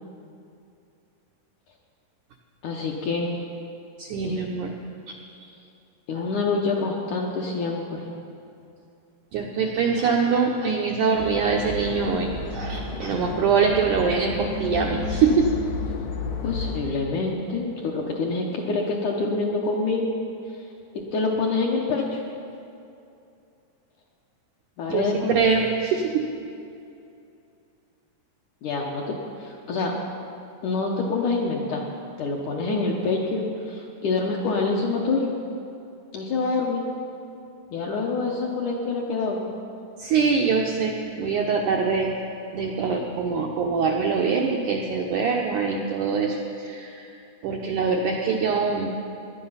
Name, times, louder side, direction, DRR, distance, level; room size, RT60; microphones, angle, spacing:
voice 1, 2.6-3.4 4.2-4.4 6.1-8.1 16.4-20.1 20.5-20.7 21.1-22.2 24.8-25.4 28.6-29.9 30.6-31.8 32.2-35.3 36.1-36.8 37.7-39.6, left 3 dB, 70° left, -1 dB, 1.9 m, -26 dB
voice 2, 4.0-4.7 5.1-5.2 9.3-15.5 24.9-26.3 40.0-42.2 42.5-47.1 47.4-48.9, right 5 dB, 80° right, 0 dB, 1.8 m, -24 dB
sound 1, 11.2-16.8, left 3 dB, 85° left, 3.5 m, -31 dB
18.5 x 11.0 x 5.6 m, 2.6 s
omnidirectional pair, 4.7 m